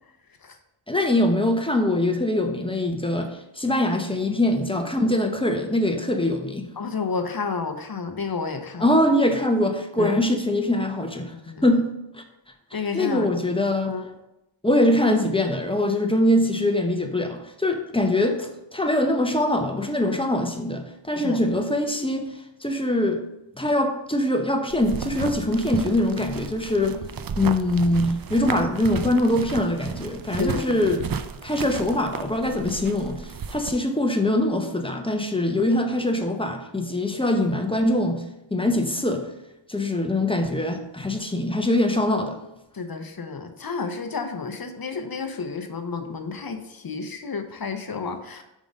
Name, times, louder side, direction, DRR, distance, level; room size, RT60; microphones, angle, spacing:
voice 1, 0.9-6.7 8.8-11.3 11.6-12.0 12.7-14.0 14.6-22.3 22.6-23.2 23.6-27.0 27.4-31.1 31.4-38.2 38.5-39.2 39.7-42.4, left 1 dB, 10° left, 4 dB, 0.7 m, -23 dB
voice 2, 6.8-8.9 10.0-10.2 11.3-11.6 12.7-13.3 13.8-14.1 21.2-21.4 30.4-30.9 42.7-48.4, left 4 dB, 45° left, 6 dB, 0.7 m, -31 dB
sound 1, 24.7-33.7, right 7 dB, 50° right, 0.5 m, -33 dB
5.1 x 3.7 x 5.2 m, 0.91 s
wide cardioid pair, 50°, 49 cm